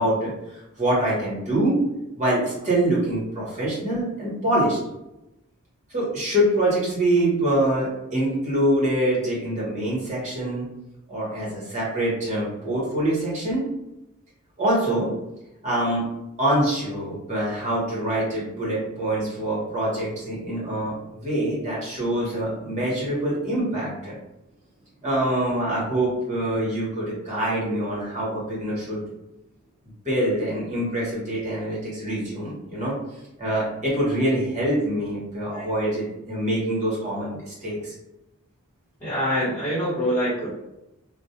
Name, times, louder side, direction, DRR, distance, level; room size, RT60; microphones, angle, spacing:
voice 1, 0.0-1.8 2.2-4.8 5.9-10.7 11.1-13.6 14.6-15.1 15.6-16.1 16.4-24.2 25.0-29.0 30.0-32.9 33.4-37.9, right 1 dB, 35° right, -6 dB, 1.1 m, -25 dB
voice 2, 39.0-40.5, equal, 15° left, -15 dB, 1.1 m, -25 dB
2.4 x 2.1 x 2.7 m, 0.91 s
head